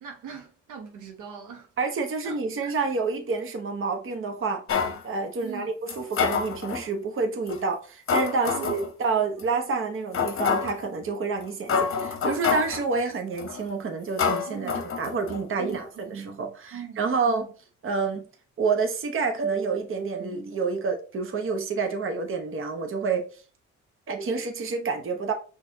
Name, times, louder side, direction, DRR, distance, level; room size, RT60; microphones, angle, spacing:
voice 1, 0.0-1.7 2.2-2.7 5.4-5.7 8.5-8.7 14.5-14.8 15.6-15.8 16.7-17.0 17.3-17.5, right 7 dB, 85° right, 1.1 m, -40 dB
voice 2, 1.8-4.6 5.0-17.5 17.8-18.2 18.6-23.3 24.1-25.3, right 4 dB, 45° right, 1.0 m, -28 dB
sound 1, 4.7-5.0 5.9-6.9 7.5-7.6 8.1-8.9 9.4-9.5 10.1-10.8 11.4-11.5 11.7-12.8 13.4-13.7 14.2-15.4 15.7-15.8, left 6 dB, 45° left, 0.9 m, -27 dB
5.4 x 3.4 x 2.7 m
cardioid pair, 90°, 30 cm